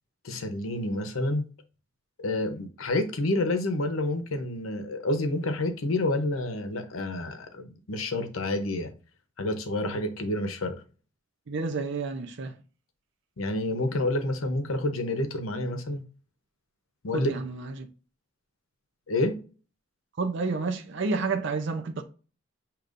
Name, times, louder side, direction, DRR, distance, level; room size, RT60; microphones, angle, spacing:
voice 1, 0.2-1.5 2.2-8.9 9.4-10.8 13.4-16.0 17.0-17.3 19.1-19.4, left 1 dB, 85° left, 0.8 m, -29 dB
voice 2, 11.5-12.6 17.1-17.9 20.2-22.0, right 4 dB, 60° right, 0.5 m, -30 dB
6.7 x 2.9 x 2.5 m
head